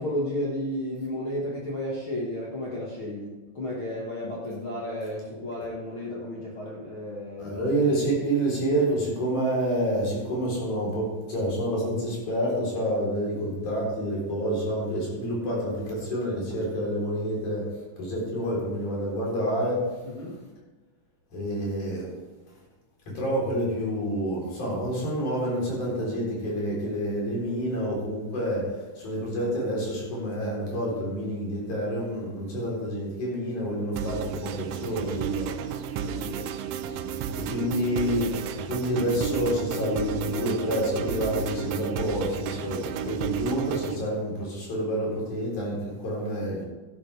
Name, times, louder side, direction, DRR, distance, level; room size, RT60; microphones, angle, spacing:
voice 1, 0.0-7.7 20.0-20.4 36.0-36.5 37.4-37.8, left 1 dB, 45° left, -5 dB, 2.3 m, -33 dB
voice 2, 7.4-17.7 18.0-19.9 21.3-22.1 23.1-35.6 37.3-38.3 38.6-46.6, right 1 dB, 65° left, -4 dB, 5.3 m, -28 dB
sound 1, 34.0-44.0, right 7 dB, 90° right, 2.3 m, -32 dB
13.5 x 11.5 x 3.4 m, 1.2 s
omnidirectional pair, 3.8 m